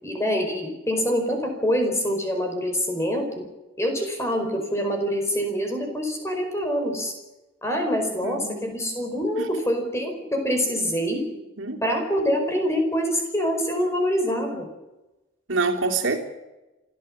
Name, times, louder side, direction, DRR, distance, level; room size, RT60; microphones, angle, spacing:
voice 1, 0.0-3.4 3.8-7.1 7.6-11.2 11.8-14.7, equal, 15° left, 4 dB, 4.8 m, -25 dB
voice 2, 8.2-8.7 9.4-9.5 11.6-11.8 15.5-16.2, right 3 dB, 75° right, 1 dB, 3.3 m, -26 dB
27.0 x 14.0 x 7.4 m, 1.0 s
head